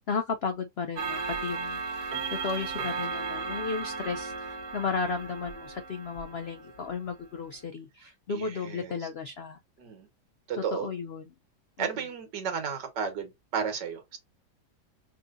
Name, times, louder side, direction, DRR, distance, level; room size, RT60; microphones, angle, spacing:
voice 1, 0.1-1.8 2.3-9.6 10.6-11.3 11.8-11.9, left 5 dB, 85° left, 0.5 m, -34 dB
Clock, 1.0-6.9, right 4 dB, 70° right, 1.6 m, -35 dB
voice 2, 8.3-9.0 9.8-10.1 10.5-10.9 11.8-14.2, right 6 dB, 85° right, 1.9 m, -33 dB
5.4 x 2.7 x 2.5 m
omnidirectional pair, 1.8 m